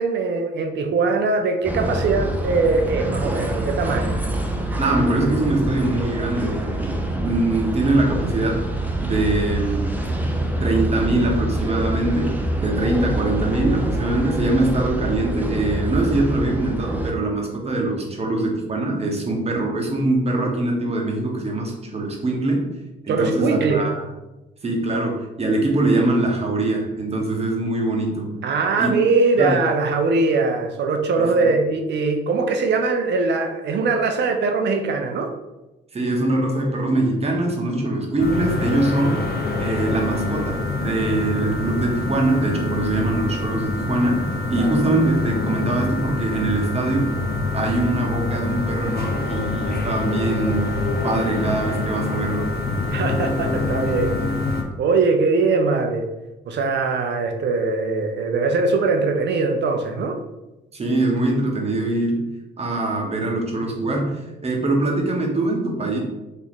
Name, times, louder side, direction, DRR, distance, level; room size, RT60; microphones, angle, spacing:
voice 1, 0.0-4.2 23.1-23.9 28.4-35.3 44.6-44.7 52.9-54.2 54.8-56.1 56.5-60.2, right 3 dB, 60° right, 4 dB, 0.6 m, -21 dB
sound 1, 1.6-17.1, right 1 dB, 10° right, 0.6 m, -25 dB
voice 2, 4.8-8.7 9.0-10.0 10.6-22.7 23.0-24.1 24.6-28.3 28.8-29.0 29.4-29.6 31.2-31.5 35.9-39.3 39.6-47.1 47.5-52.5 60.7-66.0, right 2 dB, 30° right, 0 dB, 1.0 m, -23 dB
sound 2, 38.2-54.6, left 3 dB, 50° left, 0.6 m, -25 dB
3.0 x 2.7 x 4.1 m, 1.0 s
cardioid pair, 90°, 20 cm